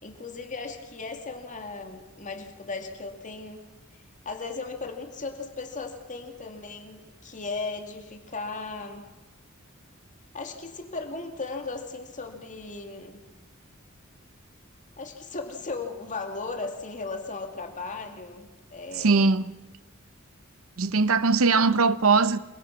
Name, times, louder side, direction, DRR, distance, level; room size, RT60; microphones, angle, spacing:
voice 1, 0.0-3.6 4.2-9.0 10.3-13.2 15.0-19.3, left 3 dB, 40° left, 2.4 m, -36 dB
voice 2, 18.9-19.5 20.8-22.4, right 4 dB, 75° right, 0.8 m, -21 dB
28.0 x 24.0 x 5.9 m
head